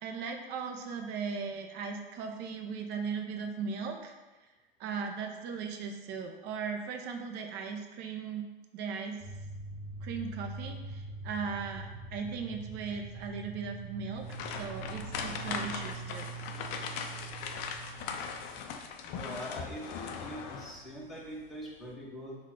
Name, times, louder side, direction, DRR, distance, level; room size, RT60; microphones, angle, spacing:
voice 1, 0.0-4.1 4.8-8.5 8.7-9.2 10.0-16.3, right 5 dB, 35° right, 4 dB, 0.5 m, -38 dB
sound 1, 9.2-18.6, right 3 dB, 55° right, 1.0 m, -43 dB
sound 2, 14.2-20.9 21.3-21.5 21.9-22.0, left 6 dB, 35° left, 0.4 m, -39 dB
voice 2, 19.1-22.4, equal, ahead, -7 dB, 1.1 m, -43 dB
3.6 x 2.4 x 4.6 m, 1.2 s
hypercardioid pair, 100°, 31 cm